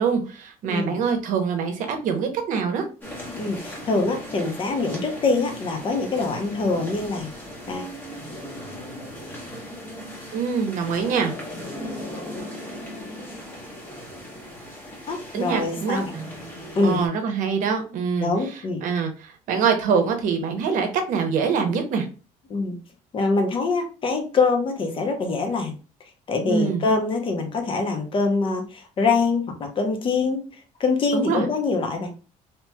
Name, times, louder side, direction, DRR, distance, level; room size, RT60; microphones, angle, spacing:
voice 1, 0.0-2.9 10.3-11.3 15.3-16.0 16.8-22.1 26.4-26.8 31.1-31.4, right 6 dB, 65° right, 5 dB, 0.7 m, -24 dB
voice 2, 0.7-1.0 3.3-7.3 7.7-7.9 15.1-16.1 16.8-17.0 18.2-18.8 22.5-22.8 23.1-25.8 26.3-30.4 30.8-32.1, left 3 dB, 35° left, 4 dB, 0.7 m, -24 dB
sound 1, 3.0-17.1, equal, 15° left, 1.0 m, -37 dB
3.0 x 2.8 x 2.2 m, 0.35 s
cardioid pair, 130°, 14 cm